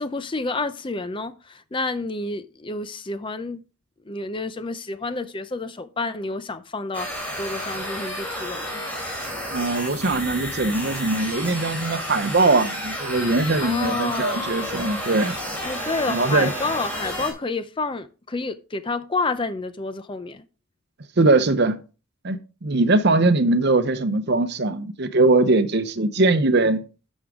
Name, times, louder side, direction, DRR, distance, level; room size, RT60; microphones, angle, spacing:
voice 1, 0.0-3.6 4.1-7.1 7.4-8.8 13.6-14.6 15.6-20.4, left 3 dB, 25° left, 0.5 m, -29 dB
sound 1, 6.9-17.3, equal, 5° left, 3.3 m, -31 dB
voice 2, 9.5-15.4 16.1-16.5 21.2-21.8 22.2-26.8, right 2 dB, 50° right, 0.8 m, -21 dB
11.0 x 6.3 x 3.6 m
head